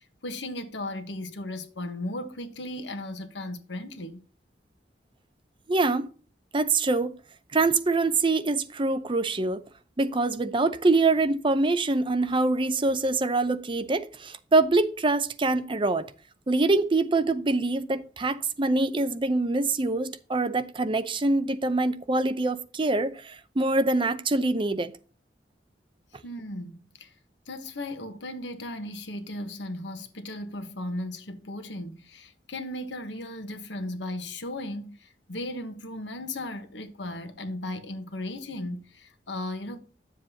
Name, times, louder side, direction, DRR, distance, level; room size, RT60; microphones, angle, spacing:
voice 1, 0.0-4.2 26.2-27.1 27.5-39.8, left 1 dB, 90° left, 1.2 m, -36 dB
voice 2, 5.7-6.1 6.5-7.1 7.5-9.6 10.0-16.1 16.5-24.9, right 3 dB, 30° right, 0.6 m, -24 dB
10.5 x 7.3 x 2.8 m
head